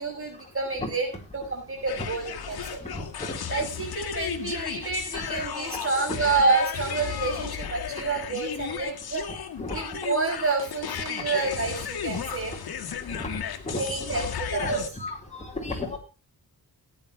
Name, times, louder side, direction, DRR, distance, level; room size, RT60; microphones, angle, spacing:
voice 1, 0.0-2.8 3.5-9.2 9.7-12.5 13.8-14.8, right 4 dB, 35° right, 2 dB, 5.7 m, -28 dB
sound 1, 1.9-14.9, left 8 dB, 70° left, 1.7 m, -34 dB
voice 2, 2.8-3.4 6.1-6.2 9.6-9.8 13.1-13.3 13.7-13.8 14.5-16.0, left 2 dB, 20° left, 0 dB, 4.0 m, -34 dB
18.0 x 9.5 x 3.1 m, 0.30 s
wide cardioid pair, 135°, 38 cm